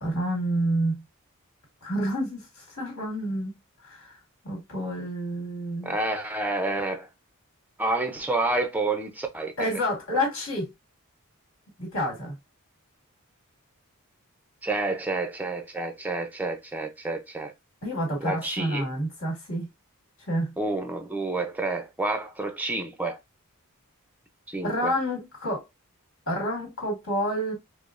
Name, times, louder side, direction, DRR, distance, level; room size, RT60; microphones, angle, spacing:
voice 1, 0.0-1.0 1.8-3.5 3.8-4.2 4.4-5.9 9.6-10.7 11.8-12.4 17.8-19.7 20.3-20.5 24.6-25.6 26.3-27.5, equal, 65° left, 2.0 m, -29 dB
voice 2, 5.8-7.1 7.8-9.7 14.6-17.5 18.2-18.9 20.6-23.2 24.5-24.9, right 2 dB, 5° right, 0.5 m, -29 dB
4.9 x 2.1 x 2.4 m
head